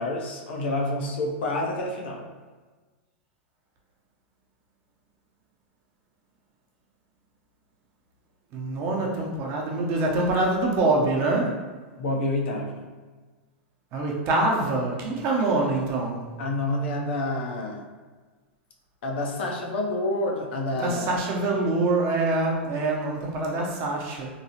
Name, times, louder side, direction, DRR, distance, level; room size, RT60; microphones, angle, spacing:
voice 1, 0.0-2.3 12.0-12.8 16.4-17.8 19.0-21.2, left 2 dB, 70° left, 1 dB, 0.5 m, -28 dB
voice 2, 8.5-11.6 13.9-16.3 20.7-24.3, right 2 dB, 45° right, -1 dB, 0.6 m, -25 dB
3.0 x 2.0 x 2.8 m, 1.4 s
hypercardioid pair, 110°, 6 cm